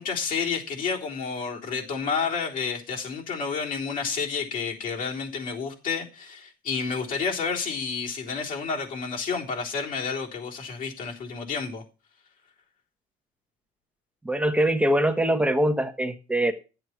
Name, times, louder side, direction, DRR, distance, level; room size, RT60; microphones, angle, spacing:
voice 1, 0.0-11.8, left 5 dB, 60° left, 3.6 m, -30 dB
voice 2, 14.2-16.5, right 1 dB, 5° right, 1.3 m, -23 dB
11.0 x 7.9 x 5.9 m
cardioid pair, 110°, 16 cm